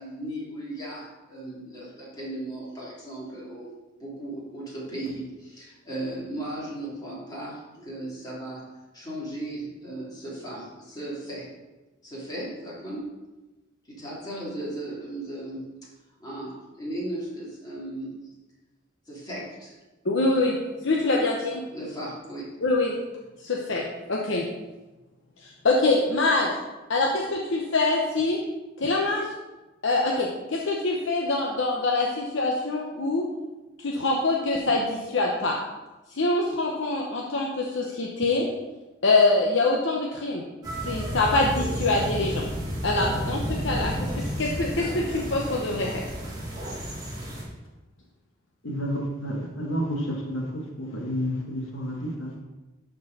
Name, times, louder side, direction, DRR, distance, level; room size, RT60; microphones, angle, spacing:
voice 1, 0.0-8.7 8.9-11.5 12.0-13.1 13.9-15.8 16.2-18.1 19.1-19.8 21.7-22.5, right 1 dB, 20° left, -7 dB, 2.9 m, -36 dB
voice 2, 20.0-20.6 20.8-21.6 22.6-23.0 23.4-24.4 25.4-26.5 26.9-28.4 28.8-29.3 29.8-33.2 33.8-35.5 36.1-38.4 39.0-40.4 40.8-42.5 42.8-43.9 44.4-46.1, left 2 dB, 65° left, -1 dB, 0.9 m, -24 dB
sound 1, 40.6-47.4, equal, 20° right, 2.0 m, -31 dB
voice 3, 48.6-52.3, equal, 85° left, -1 dB, 1.5 m, -30 dB
12.0 x 4.6 x 4.1 m, 1.1 s
head